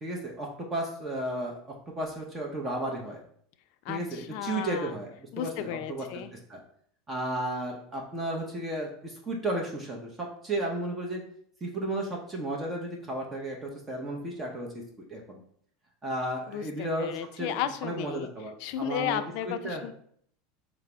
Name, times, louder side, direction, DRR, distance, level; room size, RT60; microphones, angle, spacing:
voice 1, 0.0-3.2 3.9-6.2 6.5-6.6 7.1-11.2 11.6-14.8 15.1-15.4 16.0-17.5 17.8-19.8, right 1 dB, 20° right, 0 dB, 0.7 m, -34 dB
voice 2, 3.9-4.9 5.3-6.3 16.5-18.3 18.6-19.9, left 10 dB, 60° left, 10 dB, 0.4 m, -34 dB
4.8 x 2.0 x 4.4 m, 0.64 s
supercardioid pair, 135°, 0 cm